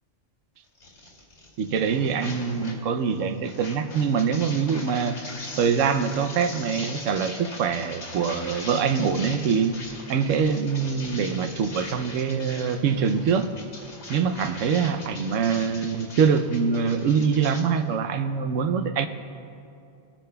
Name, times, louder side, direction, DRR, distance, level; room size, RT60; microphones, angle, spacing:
sound 1, 0.8-2.8 3.1-17.6, left 2 dB, 70° left, 2.9 m, -41 dB
voice 1, 1.6-5.2 5.6-9.8 10.1-13.5 14.1-19.1, right 6 dB, 85° right, 9 dB, 1.0 m, -24 dB
23.0 x 10.0 x 2.3 m, 2.6 s
omnidirectional pair, 1.3 m